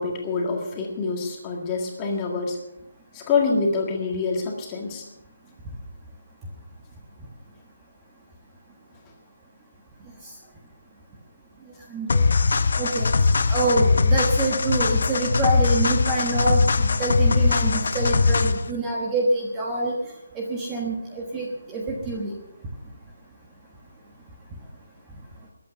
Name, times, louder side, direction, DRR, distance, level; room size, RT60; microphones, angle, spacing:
voice 1, 0.0-2.6 3.1-5.0, left 4 dB, 10° left, 1 dB, 1.8 m, -26 dB
voice 2, 11.9-12.2 12.8-13.1 13.5-19.9 20.3-22.3, right 2 dB, 10° right, -2 dB, 1.3 m, -26 dB
sound 1, 12.1-18.7, left 4 dB, 50° left, 0.8 m, -21 dB
21.0 x 8.6 x 6.6 m, 0.86 s
hypercardioid pair, 180°, 0 cm